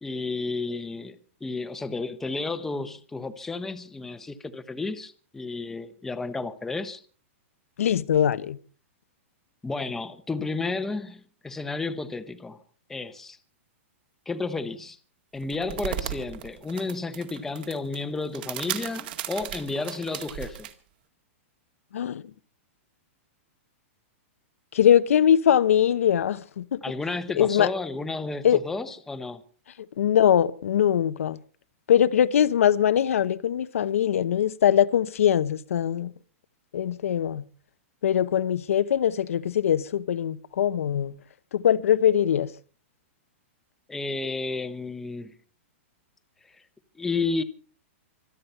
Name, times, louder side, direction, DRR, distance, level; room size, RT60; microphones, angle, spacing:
voice 1, 0.0-7.0 9.6-12.6 12.9-13.4 14.3-15.0 15.3-20.7 26.8-29.4 43.9-45.3 47.0-47.4, left 3 dB, 5° left, 0.8 m, -32 dB
voice 2, 7.8-8.6 21.9-22.2 24.7-26.8 27.4-27.7 28.4-28.6 30.0-31.4 31.9-36.1 36.7-37.4 38.0-41.1 41.5-42.5, left 9 dB, 85° left, 0.9 m, -22 dB
sound 1, 15.4-20.7, right 12 dB, 45° right, 2.0 m, -36 dB
25.5 x 9.6 x 5.5 m
supercardioid pair, 170°, 7 cm